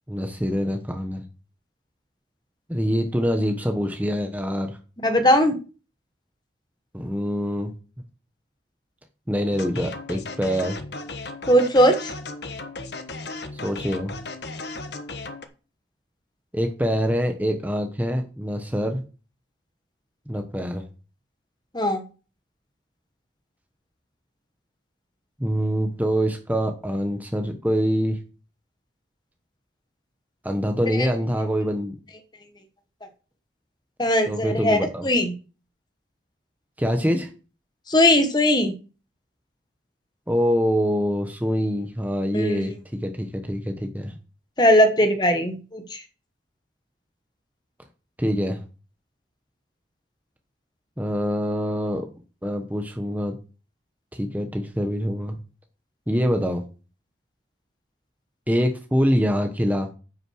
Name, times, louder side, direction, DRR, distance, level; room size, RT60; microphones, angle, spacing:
voice 1, 0.1-1.2 2.7-4.8 6.9-7.7 9.3-10.8 13.5-14.1 16.5-19.0 20.3-20.8 25.4-28.2 30.4-31.9 34.2-35.1 36.8-37.3 40.3-44.2 48.2-48.6 51.0-52.1 52.4-53.4 54.1-55.4 56.1-56.6 58.5-59.9, equal, 10° right, 5 dB, 1.0 m, -25 dB
voice 2, 5.0-5.6 11.5-12.1 21.7-22.0 31.0-31.1 34.0-35.3 37.9-38.7 42.3-42.6 44.6-46.0, equal, 25° left, 7 dB, 1.4 m, -19 dB
sound 1, 9.5-15.5, left 3 dB, 70° left, 1.3 m, -35 dB
9.3 x 6.2 x 6.4 m, 0.35 s
head